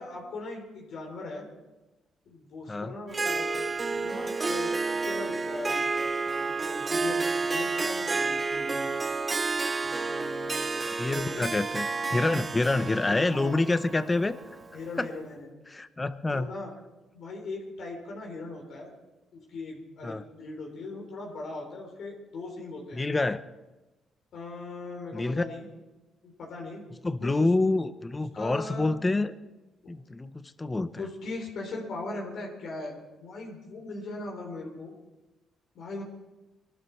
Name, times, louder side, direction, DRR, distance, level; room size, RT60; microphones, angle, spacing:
voice 1, 0.0-1.5 2.2-5.9 6.2-8.9 9.8-11.5 13.0-13.9 14.7-15.5 16.3-16.7 17.1-18.9 19.3-23.0 24.3-25.7 26.2-26.8 27.2-27.3 28.3-28.9 31.0-32.9 33.2-34.9 35.7-36.0, left 2 dB, 70° left, -1 dB, 3.8 m, -39 dB
Harp, 3.1-14.9, right 3 dB, 25° right, 0.8 m, -30 dB
voice 2, 11.0-14.3 15.0-15.1 15.7-16.5 20.0-20.2 22.9-23.4 25.1-25.4 27.0-29.3 29.9-31.1, left 2 dB, 20° left, 12 dB, 0.8 m, -27 dB
22.5 x 12.5 x 4.5 m, 1.1 s
cardioid pair, 90°, 0 cm